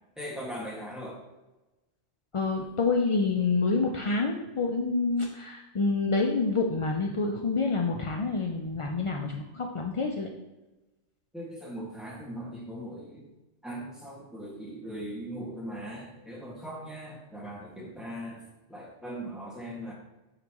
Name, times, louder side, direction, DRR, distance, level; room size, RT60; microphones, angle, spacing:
voice 1, 0.2-1.2 11.3-13.3 13.6-19.9, equal, ahead, -5 dB, 1.7 m, -39 dB
voice 2, 2.3-10.3, left 3 dB, 50° left, 2 dB, 0.3 m, -27 dB
11.0 x 4.1 x 3.0 m, 1.1 s
omnidirectional pair, 1.2 m